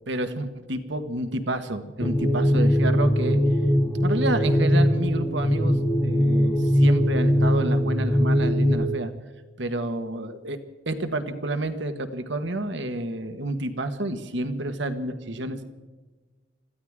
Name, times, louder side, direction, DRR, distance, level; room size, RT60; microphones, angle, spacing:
voice 1, 0.1-3.4 4.0-9.1 9.6-10.6 10.8-15.6, right 1 dB, 70° right, 8 dB, 1.6 m, -29 dB
sound 1, 2.0-8.8, equal, 20° left, 1.4 m, -21 dB
26.0 x 15.0 x 3.7 m, 1.3 s
head